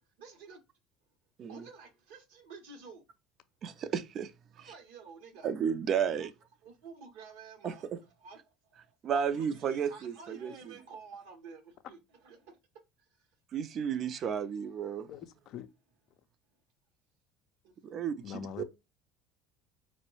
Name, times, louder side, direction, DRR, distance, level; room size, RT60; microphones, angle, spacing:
voice 1, 0.2-0.6 1.5-3.0 4.5-5.5 6.2-6.3 6.6-12.0 12.2-12.6 17.6-18.1, right 4 dB, 75° right, 0.7 m, -51 dB
voice 2, 3.6-4.3 4.7-4.8 5.4-6.3 7.6-7.7 9.0-10.7 13.5-15.1 17.8-18.6, right 7 dB, 50° right, 0.4 m, -33 dB
voice 3, 15.1-15.7 18.2-18.6, left 9 dB, 60° left, 0.4 m, -43 dB
4.4 x 2.0 x 2.9 m
hypercardioid pair, 70°, 0 cm